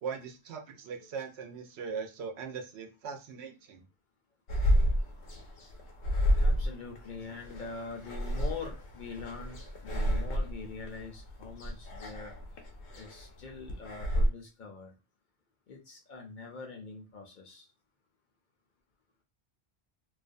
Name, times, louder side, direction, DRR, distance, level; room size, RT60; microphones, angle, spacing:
voice 1, 0.0-3.8, right 6 dB, 80° right, 4 dB, 0.9 m, -40 dB
sound 1, 4.5-14.3, equal, 85° left, 0.9 m, -30 dB
voice 2, 6.3-12.3 12.9-14.9 15.7-17.7, left 4 dB, 55° left, 1 dB, 0.6 m, -44 dB
2.4 x 2.2 x 2.5 m, 0.28 s
omnidirectional pair, 1.1 m